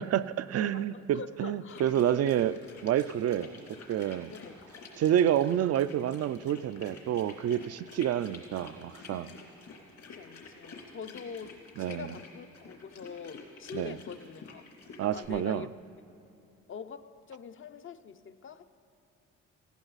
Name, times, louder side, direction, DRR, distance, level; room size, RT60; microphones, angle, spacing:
voice 1, 0.0-3.5 3.9-4.3 5.0-9.3 11.8-12.2 13.7-14.0 15.0-15.7, right 10 dB, 55° right, 15 dB, 0.5 m, -29 dB
voice 2, 0.7-1.9 4.3-4.6 9.0-9.4 10.1-14.6 15.1-15.7 16.7-18.6, left 6 dB, 45° left, 11 dB, 0.6 m, -44 dB
sound 1, 1.7-15.3, left 4 dB, 65° left, 2.8 m, -49 dB
19.0 x 15.5 x 4.1 m, 2.7 s
cardioid pair, 90°, 30 cm